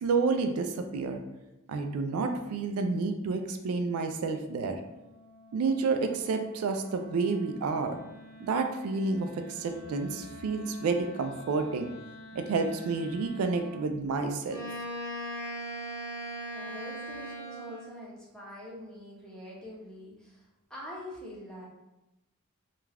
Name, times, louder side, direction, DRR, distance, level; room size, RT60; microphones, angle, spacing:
voice 1, 0.0-1.2 1.7-4.7 5.5-8.0 8.4-11.9 12.3-14.6, right 4 dB, 85° right, 7 dB, 0.3 m, -30 dB
Wind instrument woodwind instrument, 2.4-13.9, left 1 dB, 50° right, 0.7 m, -51 dB
Wind instrument woodwind instrument 2, 14.5-18.0, right 1 dB, 65° left, 1.0 m, -38 dB
voice 2, 16.5-21.6, left 1 dB, 5° left, -6 dB, 0.6 m, -45 dB
2.4 x 2.2 x 3.2 m, 0.95 s
head